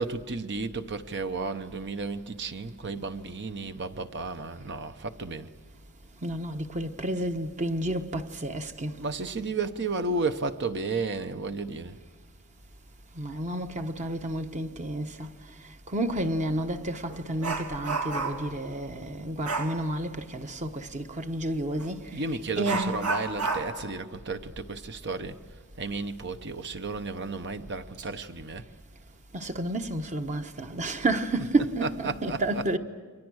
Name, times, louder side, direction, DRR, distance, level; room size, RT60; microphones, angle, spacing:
voice 1, 0.0-5.5 9.0-12.0 22.1-25.4 25.8-28.6 31.4-32.6, right 3 dB, 50° right, 1.0 m, -33 dB
voice 2, 6.2-9.0 13.2-15.4 15.9-22.0 22.6-23.0 29.3-32.8, right 1 dB, 35° right, 1.1 m, -30 dB
Dog, 16.1-16.2 16.7-18.6 19.4-19.8 21.8-21.9 22.6-25.9 26.2-26.3 26.9-27.0 27.6-28.0 28.4-28.7, right 4 dB, 80° right, 2.4 m, -32 dB
29.5 x 23.5 x 6.4 m
head